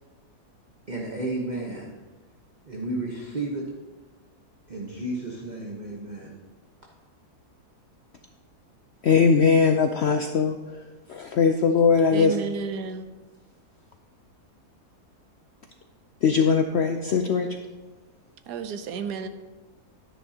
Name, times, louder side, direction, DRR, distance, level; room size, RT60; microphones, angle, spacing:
voice 1, 0.9-2.0 2.7-3.7 4.7-6.4, right 2 dB, 30° right, -2 dB, 1.0 m, -32 dB
voice 2, 9.0-10.6 11.1-12.4 16.2-17.5, left 5 dB, 75° left, 6 dB, 0.6 m, -20 dB
voice 3, 12.1-13.1 18.5-19.3, right 5 dB, 85° right, 10 dB, 1.3 m, -31 dB
11.0 x 10.0 x 2.8 m, 1.3 s
omnidirectional pair, 1.7 m